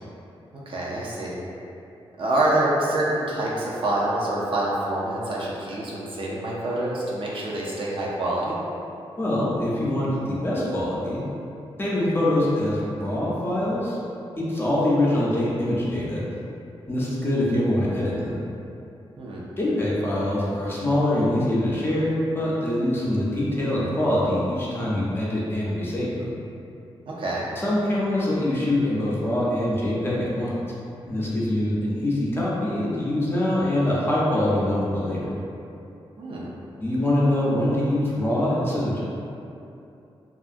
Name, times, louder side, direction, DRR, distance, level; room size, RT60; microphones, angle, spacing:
voice 1, 0.5-1.4 2.2-8.6 19.2-19.4 27.1-27.5 36.2-36.5, right 1 dB, 60° right, -5 dB, 0.5 m, -26 dB
voice 2, 9.2-11.2 11.8-14.0 14.4-16.2 16.9-18.4 19.6-26.3 27.6-30.5 31.1-35.3 36.8-39.0, left 1 dB, 20° left, -7 dB, 0.6 m, -24 dB
2.6 x 2.4 x 2.5 m, 2.8 s
wide cardioid pair, 110°, 10 cm